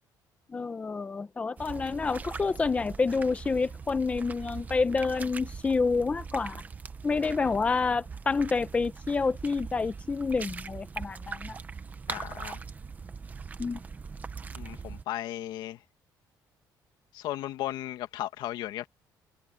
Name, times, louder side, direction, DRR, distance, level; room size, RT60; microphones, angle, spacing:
voice 1, 0.5-6.6 7.0-11.6 13.6-13.8, left 4 dB, 15° left, 0.8 m, -28 dB
sound 1, 1.6-15.0, right 5 dB, 20° right, 0.9 m, -41 dB
voice 2, 12.1-12.6 14.5-15.8 17.1-18.9, left 14 dB, 75° left, 2.2 m, -35 dB
cardioid pair, 165°, 8 cm